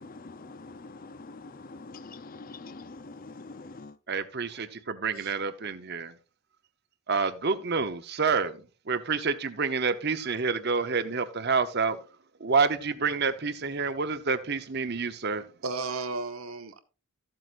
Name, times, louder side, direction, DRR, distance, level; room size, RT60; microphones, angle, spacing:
voice 1, 0.0-3.9, left 3 dB, 40° left, 0.6 m, -44 dB
voice 2, 4.1-6.1 7.1-12.0 12.4-15.5, right 5 dB, 50° right, 0.8 m, -28 dB
voice 3, 15.6-16.8, right 3 dB, 75° right, 1.1 m, -34 dB
13.5 x 7.7 x 2.5 m
head